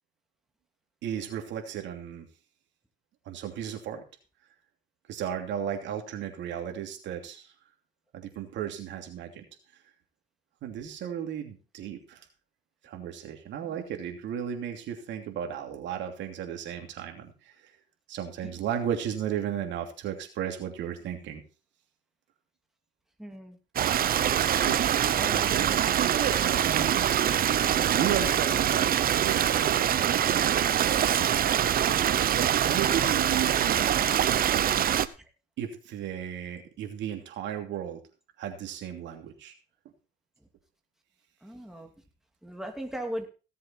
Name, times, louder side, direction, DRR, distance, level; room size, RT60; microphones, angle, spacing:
voice 1, 1.0-2.3 3.2-4.0 5.1-7.5 8.1-9.4 10.6-12.2 12.8-17.7 18.1-21.4 24.4-24.9 25.2-27.3 27.9-31.0 32.3-34.9 35.6-38.0 38.4-39.5, right 9 dB, 70° right, 4 dB, 2.9 m, -35 dB
voice 2, 23.2-23.6 25.2-25.8 41.4-41.9 42.4-43.3, right 1 dB, ahead, 2 dB, 2.9 m, -37 dB
Stream, 23.8-35.1, right 10 dB, 50° right, 0.9 m, -24 dB
17.0 x 7.6 x 4.6 m, 0.35 s
supercardioid pair, 85°, 19 cm